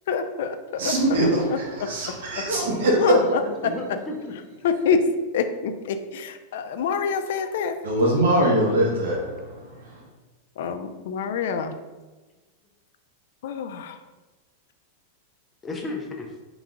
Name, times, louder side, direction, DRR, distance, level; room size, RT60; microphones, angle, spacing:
voice 1, 0.1-0.5 1.1-1.2 1.5-1.6 3.0-3.7 4.6-5.0 5.3-7.8 10.6-11.7 13.4-14.0, left 6 dB, 65° left, 8 dB, 0.4 m, -26 dB
voice 2, 0.8-3.7 7.8-9.9, right 1 dB, 80° right, -1 dB, 1.2 m, -22 dB
voice 3, 2.3-2.6 3.1-4.3 15.6-16.3, left 3 dB, 15° left, 2 dB, 0.5 m, -35 dB
3.4 x 3.0 x 3.7 m, 1.2 s
supercardioid pair, 155°, 0 cm